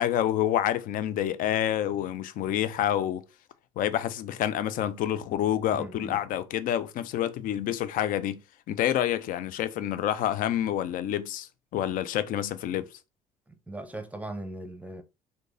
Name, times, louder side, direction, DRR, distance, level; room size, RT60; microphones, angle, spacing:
voice 1, 0.0-3.2 3.8-8.4 8.7-12.9, left 11 dB, 50° left, 0.4 m, -28 dB
voice 2, 5.7-6.2 13.5-15.0, right 1 dB, 10° right, 0.6 m, -39 dB
3.8 x 2.7 x 2.5 m
hypercardioid pair, 55°, 18 cm